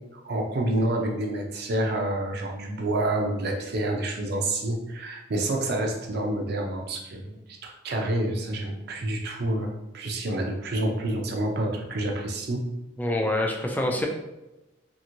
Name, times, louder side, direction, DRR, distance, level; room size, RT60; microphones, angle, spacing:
voice 1, 0.2-12.7, right 1 dB, 55° right, 1 dB, 0.5 m, -28 dB
voice 2, 13.0-14.1, left 1 dB, 10° left, 1 dB, 0.3 m, -26 dB
2.9 x 2.6 x 2.5 m, 0.98 s
head